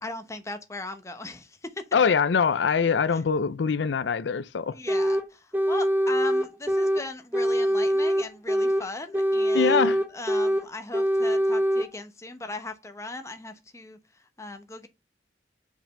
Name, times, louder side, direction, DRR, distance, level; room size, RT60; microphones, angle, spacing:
voice 1, 0.0-1.9 4.7-14.0 14.4-14.9, left 2 dB, 15° left, 0.8 m, -38 dB
voice 2, 1.9-4.8 9.5-10.0, left 6 dB, 90° left, 0.5 m, -23 dB
sound 1, 4.9-5.3 5.5-7.0 7.3-8.9 9.1-10.7 10.9-11.9, equal, 10° right, 0.7 m, -23 dB
5.4 x 5.0 x 5.2 m
head